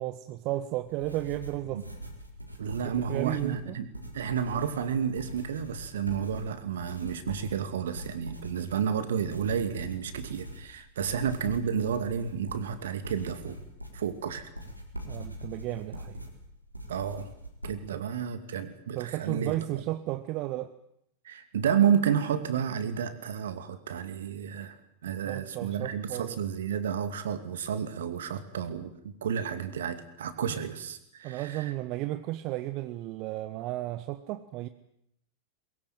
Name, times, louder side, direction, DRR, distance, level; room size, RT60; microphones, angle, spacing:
voice 1, 0.0-1.8 2.9-3.8 15.1-16.2 17.9-18.0 18.9-20.7 25.2-26.4 31.2-34.7, right 16 dB, 40° right, 11 dB, 1.1 m, -34 dB
sound 1, 0.7-17.8, equal, 90° right, 4.2 m, -43 dB
voice 2, 2.6-13.6 13.9-14.5 16.9-17.3 17.6-19.8 21.2-24.8 25.0-31.7, right 8 dB, 60° right, 11 dB, 2.6 m, -31 dB
22.5 x 22.0 x 9.2 m, 0.74 s
figure-of-eight pair, 90°, 0 cm